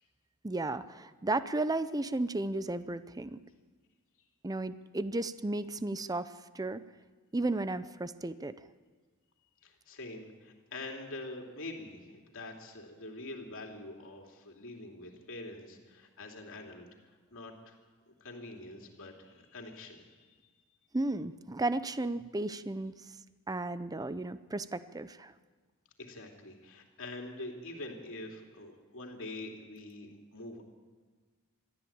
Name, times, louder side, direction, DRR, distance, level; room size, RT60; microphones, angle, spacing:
voice 1, 0.4-3.4 4.4-6.8 7.3-8.5 20.9-22.9 23.5-25.3, right 2 dB, 15° right, 13 dB, 0.6 m, -34 dB
voice 2, 9.6-17.7 18.2-20.4 26.0-30.6, left 2 dB, 65° left, 1 dB, 3.0 m, -45 dB
22.5 x 14.0 x 8.8 m, 1.4 s
head